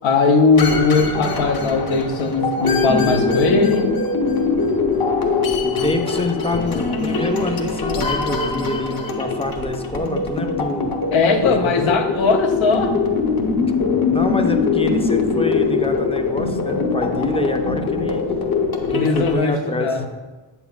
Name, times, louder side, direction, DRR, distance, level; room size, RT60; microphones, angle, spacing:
voice 1, 0.0-3.9 11.1-12.9 18.9-20.1, left 4 dB, 85° left, 5 dB, 0.8 m, -18 dB
sound 1, 0.5-19.4, left 4 dB, 50° left, 1.0 m, -22 dB
voice 2, 5.6-11.0 11.4-11.8 14.1-18.2 18.9-20.0, left 1 dB, 15° left, 5 dB, 0.5 m, -26 dB
8.0 x 7.1 x 2.4 m, 1.2 s
cardioid pair, 90°, 46 cm